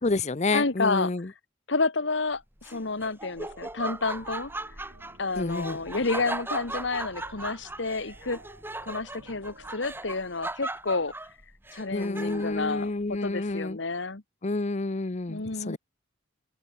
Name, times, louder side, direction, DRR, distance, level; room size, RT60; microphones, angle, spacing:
voice 1, 0.0-1.3 5.4-5.8 11.9-13.8 14.4-15.8, left 3 dB, 35° left, 0.7 m, -29 dB
voice 2, 0.5-1.1 1.7-4.5 5.2-8.4 8.8-11.1 11.7-14.2 15.3-15.8, left 3 dB, 65° left, 1.5 m, -30 dB
Laughter, 2.6-12.6, right 2 dB, 10° right, 5.6 m, -38 dB
sound 1, 3.3-10.6, right 2 dB, 80° right, 6.8 m, -55 dB
open air
head